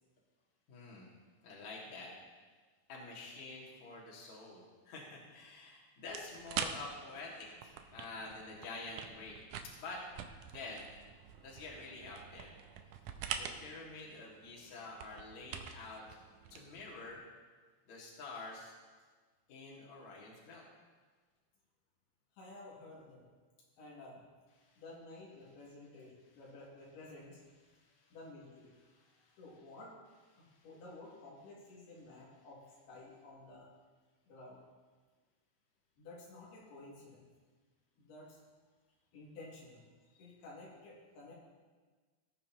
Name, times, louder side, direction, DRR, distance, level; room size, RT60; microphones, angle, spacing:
voice 1, 0.7-1.1 1.4-2.1 2.9-9.4 9.8-10.0 10.5-10.9 11.4-12.5 13.3-16.2 16.5-17.2 17.9-18.7 19.5-20.7 24.5-25.0 26.3-26.5 27.5-28.3 28.6-29.8 30.1-30.9, left 3 dB, 50° left, -4 dB, 3.2 m, -49 dB
sound 1, 6.1-17.2, right 8 dB, 90° right, 1.8 m, -46 dB
voice 2, 22.3-23.2 23.8-24.3 24.8-27.4 28.1-28.7 29.4-29.9 30.4-32.6 32.9-33.7 34.3-34.6 36.0-37.3 38.0-38.4 39.1-39.8 40.1-41.3, left 2 dB, 90° left, -5 dB, 4.3 m, -52 dB
19.0 x 9.2 x 3.0 m, 1.4 s
omnidirectional pair, 4.4 m